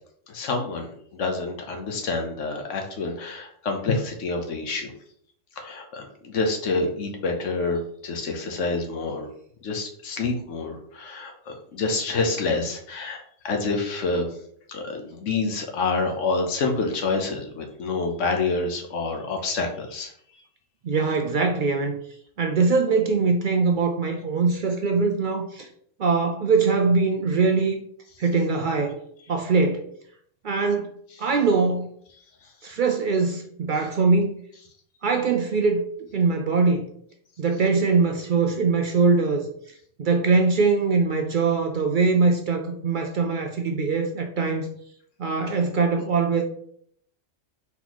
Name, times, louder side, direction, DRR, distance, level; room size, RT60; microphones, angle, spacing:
voice 1, 0.3-4.9 5.6-9.3 9.6-13.2 13.4-14.3 14.7-20.1, left 3 dB, 75° left, 3 dB, 1.2 m, -27 dB
voice 2, 20.8-22.0 22.4-25.7 26.0-27.8 28.2-29.0 29.3-29.8 30.4-30.9 31.2-31.9 32.6-34.3 35.0-35.8 36.1-36.9 37.4-39.5 40.0-44.7 45.2-46.4, right 4 dB, 65° right, 4 dB, 0.5 m, -22 dB
4.3 x 3.9 x 3.0 m, 0.65 s
omnidirectional pair, 1.3 m